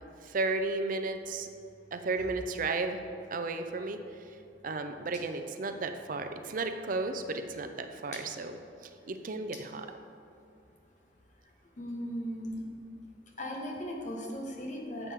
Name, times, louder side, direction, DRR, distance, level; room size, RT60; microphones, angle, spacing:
voice 1, 0.2-1.5 1.9-3.0 3.3-4.0 4.3-4.4 4.6-9.9, right 3 dB, 50° right, 7 dB, 0.5 m, -34 dB
voice 2, 11.8-12.6 13.4-15.1, equal, 45° left, -1 dB, 1.4 m, -37 dB
11.0 x 7.3 x 3.6 m, 2.5 s
head